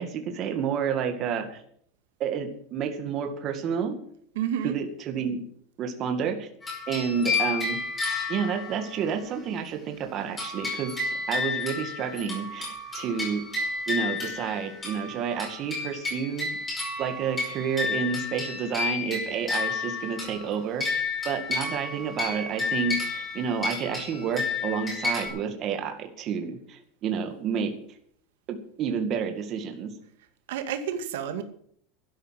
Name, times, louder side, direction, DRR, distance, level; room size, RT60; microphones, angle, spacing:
voice 1, 0.0-1.6 2.2-4.0 4.6-5.4 5.8-6.5 6.9-7.8 8.3-11.0 11.3-13.4 13.9-16.6 17.0-27.7 28.5-29.9, right 7 dB, 30° right, 5 dB, 2.1 m, -30 dB
voice 2, 4.4-4.8 30.5-31.4, right 8 dB, 85° right, 8 dB, 2.2 m, -30 dB
sound 1, 6.6-9.1 10.4-25.3, left 4 dB, 10° left, 4.9 m, -31 dB
12.0 x 11.0 x 7.6 m, 0.62 s
supercardioid pair, 170°, 0 cm